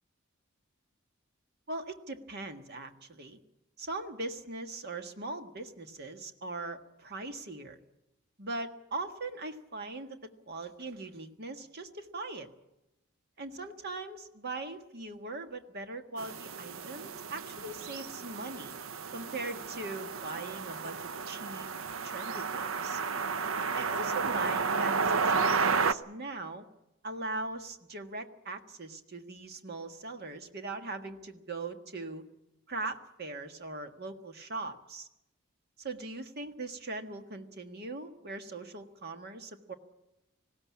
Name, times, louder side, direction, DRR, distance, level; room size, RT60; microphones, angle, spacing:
voice 1, 1.7-3.4 3.8-7.8 8.4-12.5 13.4-18.7 19.1-21.7 22.0-23.0 23.7-26.6 27.0-32.2 32.7-35.1 35.8-39.7, right 2 dB, 55° right, 7 dB, 1.6 m, -40 dB
sound 1, 16.2-25.9, right 5 dB, 80° right, 0.7 m, -32 dB
20.0 x 16.5 x 8.5 m, 0.90 s
head